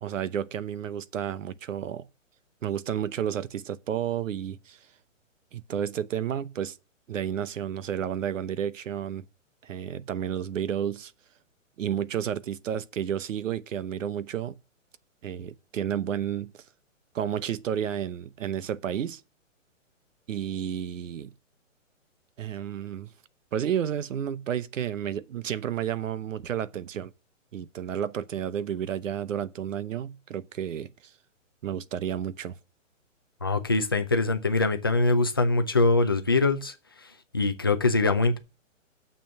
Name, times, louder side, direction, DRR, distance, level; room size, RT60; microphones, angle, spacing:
voice 1, 0.0-2.1 2.6-4.8 5.5-6.8 7.1-9.3 9.6-11.1 11.8-14.6 15.2-16.6 17.1-19.2 20.3-21.3 22.4-23.1 23.5-27.1 27.5-30.9 31.6-32.6, right 9 dB, 70° right, 0.9 m, -31 dB
voice 2, 33.4-38.4, left 3 dB, 20° left, 0.4 m, -24 dB
6.9 x 6.1 x 6.8 m
hypercardioid pair, 160°, 39 cm